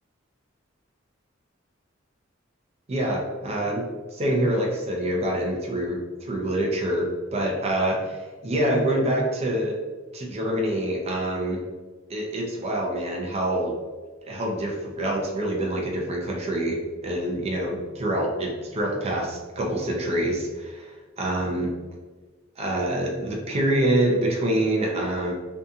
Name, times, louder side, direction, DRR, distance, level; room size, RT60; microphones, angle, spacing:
voice 1, 2.9-3.8 4.1-9.8 10.1-11.6 12.1-13.7 14.3-21.7 22.6-25.3, right 1 dB, 30° right, -1 dB, 0.4 m, -26 dB
2.6 x 2.3 x 2.6 m, 1.3 s
head